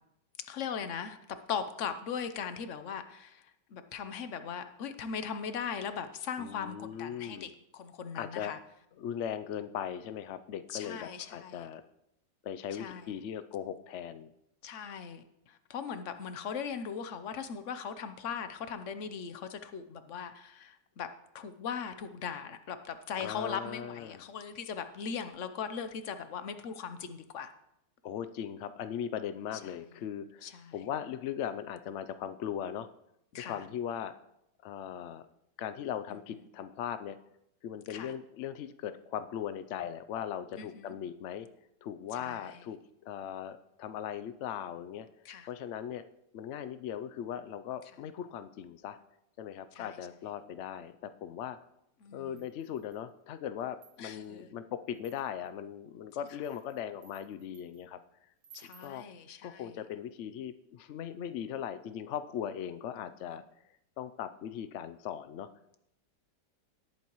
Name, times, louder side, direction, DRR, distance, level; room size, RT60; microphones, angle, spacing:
voice 1, 0.5-8.6 10.7-11.7 12.7-13.1 14.6-21.1 21.3-27.5 29.6-29.7 30.4-30.7 33.3-33.6 37.9-38.1 40.6-40.9 42.1-42.6 45.2-45.5 49.7-50.0 52.0-52.4 54.0-54.5 58.5-59.8, left 7 dB, 55° left, 0.9 m, -39 dB
voice 2, 6.4-7.5 8.1-8.6 9.0-11.8 12.4-14.3 23.2-24.2 28.0-32.9 33.3-34.1 34.6-35.2 35.6-37.2 37.6-41.5 41.8-42.8 43.0-45.1 45.5-46.0 46.3-49.0 49.4-51.6 52.1-58.0 58.6-59.0 59.4-63.4 64.0-65.5, left 9 dB, 85° left, 0.6 m, -39 dB
sound 1, 52.4-53.1 53.6-54.3 54.9-55.5 56.1-57.8 58.4-59.0, right 7 dB, 85° right, 2.4 m, -59 dB
18.5 x 8.6 x 3.1 m
omnidirectional pair, 1.9 m